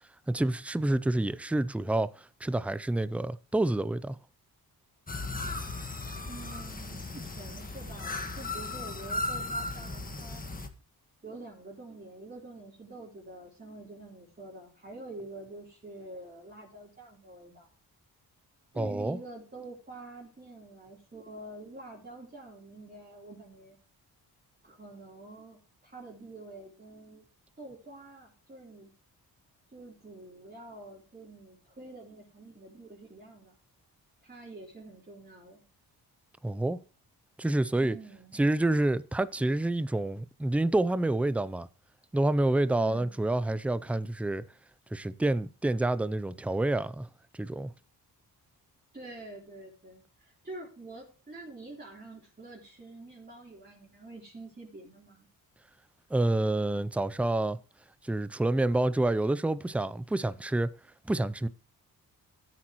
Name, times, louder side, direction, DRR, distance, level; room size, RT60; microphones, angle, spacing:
voice 1, 0.3-4.2 18.8-19.2 36.4-36.8 37.4-38.0 38.3-41.7 42.1-44.4 44.9-47.1 47.3-47.7 56.1-57.6 58.0-60.7 61.1-61.5, right 2 dB, 5° right, 0.4 m, -28 dB
sound 1, 5.1-10.7, left 2 dB, 20° left, 1.5 m, -36 dB
voice 2, 6.3-10.4 11.2-17.7 18.7-23.8 24.6-27.2 27.6-28.9 29.7-33.6 34.2-35.6 37.8-38.4 42.8-43.2 48.9-55.3, right 2 dB, 25° right, 3.8 m, -47 dB
14.0 x 8.6 x 3.0 m
cardioid pair, 95°, 38 cm